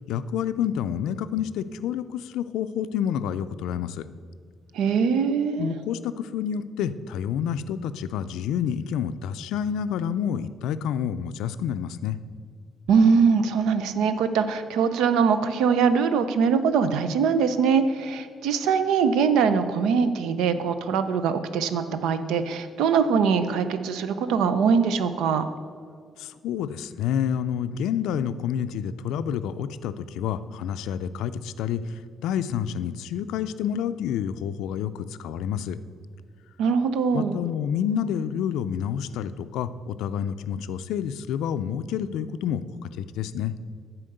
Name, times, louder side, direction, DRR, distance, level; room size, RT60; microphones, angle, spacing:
voice 1, 0.1-4.0 5.5-12.2 26.2-31.9 32.2-35.8 37.1-43.5, left 8 dB, 90° left, 13 dB, 0.4 m, -29 dB
voice 2, 4.7-5.7 12.9-25.4 36.6-37.4, right 6 dB, 90° right, 11 dB, 0.6 m, -22 dB
10.0 x 4.4 x 7.8 m, 2.1 s
cardioid pair, 90°, 0 cm